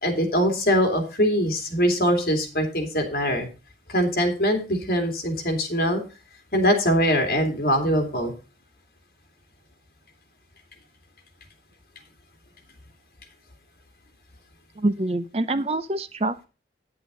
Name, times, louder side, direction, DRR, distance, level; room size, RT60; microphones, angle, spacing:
voice 1, 0.0-3.5 3.9-6.0 6.5-8.3, equal, 55° left, 3 dB, 2.7 m, -22 dB
voice 2, 14.8-16.4, right 2 dB, 35° right, 13 dB, 0.6 m, -25 dB
9.8 x 8.3 x 3.9 m, 0.32 s
head